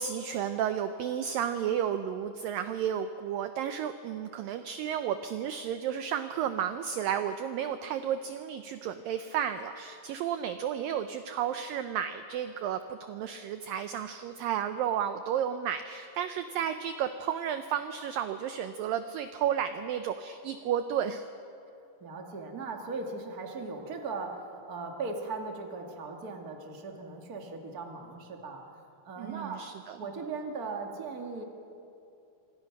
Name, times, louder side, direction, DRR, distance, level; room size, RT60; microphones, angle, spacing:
voice 1, 0.0-21.3 29.2-30.0, right 9 dB, 75° right, 9 dB, 2.1 m, -32 dB
voice 2, 22.0-28.7 29.0-29.7 30.0-31.4, right 3 dB, 30° right, 2 dB, 1.9 m, -38 dB
26.0 x 26.0 x 6.0 m, 2.7 s
omnidirectional pair, 4.7 m